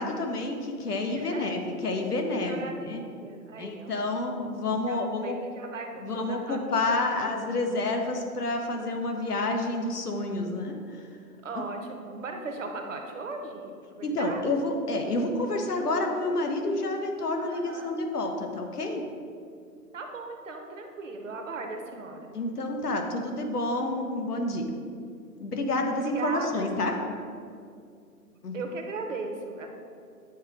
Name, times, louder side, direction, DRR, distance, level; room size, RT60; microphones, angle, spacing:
voice 1, 0.0-3.0 3.6-5.4 6.0-11.1 11.6-11.7 14.0-19.0 22.3-24.7 25.4-26.9 28.4-28.6, left 2 dB, 75° left, 3 dB, 1.1 m, -29 dB
voice 2, 1.1-1.5 2.3-2.8 3.2-4.0 4.9-7.4 7.7-8.0 11.4-14.5 17.5-17.9 19.9-22.4 26.0-26.8 28.5-29.7, right 3 dB, 55° right, 4 dB, 0.9 m, -38 dB
8.2 x 3.0 x 5.0 m, 2.3 s
figure-of-eight pair, 135°, 46 cm